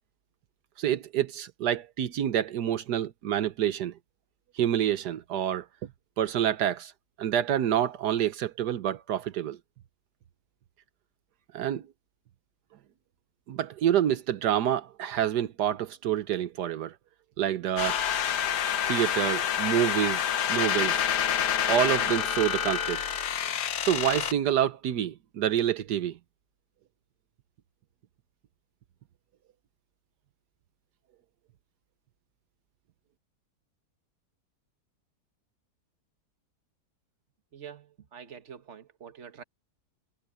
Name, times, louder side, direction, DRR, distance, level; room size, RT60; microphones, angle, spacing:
voice 1, 0.8-3.9 4.5-5.7 6.2-6.9 7.2-9.6 11.5-11.8 13.5-16.9 17.4-18.0 18.8-21.0 21.7-23.0 23.8-26.2, right 10 dB, 85° right, 1.4 m, -27 dB
sound 1, 17.8-24.3, left 9 dB, 80° left, 1.6 m, -28 dB
voice 2, 37.5-39.4, right 7 dB, 45° right, 1.7 m, -46 dB
omnidirectional pair, 1.7 m